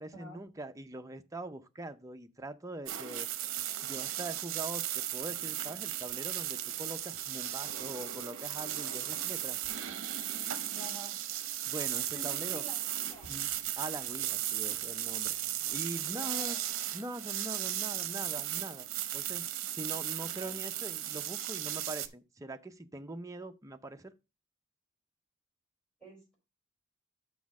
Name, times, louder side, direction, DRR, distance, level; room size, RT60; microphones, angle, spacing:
voice 1, 0.0-9.6 11.7-12.6 13.3-16.6 16.9-18.9 19.1-24.1, right 1 dB, 15° right, 0.5 m, -43 dB
sound 1, 2.9-22.1, right 12 dB, 60° right, 0.7 m, -36 dB
sound 2, 5.1-10.9 11.7-15.7, equal, 55° left, 2.8 m, -63 dB
voice 2, 10.7-11.2 12.1-12.8 13.1-13.3 16.1-16.6 18.0-18.1 20.4-20.5 26.0-26.4, right 1 dB, 5° left, 4.0 m, -49 dB
6.1 x 6.1 x 4.7 m
head